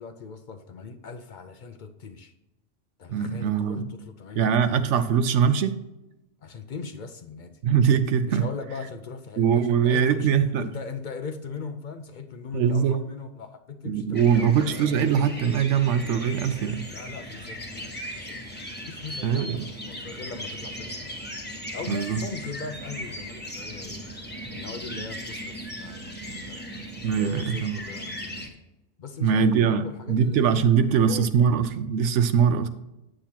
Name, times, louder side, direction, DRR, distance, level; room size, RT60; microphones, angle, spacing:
voice 1, 0.0-2.3 3.0-5.0 6.4-7.6 8.2-10.3 10.6-14.5 16.9-18.5 18.8-21.1 21.7-24.1 24.5-26.7 27.1-28.6 29.0-31.6, left 5 dB, 55° left, 8 dB, 0.6 m, -39 dB
voice 2, 3.1-3.9 4.4-5.8 7.6-8.5 9.4-10.7 12.5-13.0 13.8-16.9 19.2-19.7 21.9-22.2 27.0-27.8 29.2-32.7, right 7 dB, 80° right, 11 dB, 0.9 m, -22 dB
sound 1, 14.1-28.5, equal, 10° left, 1.0 m, -38 dB
8.6 x 7.7 x 2.9 m, 0.94 s
omnidirectional pair, 1.2 m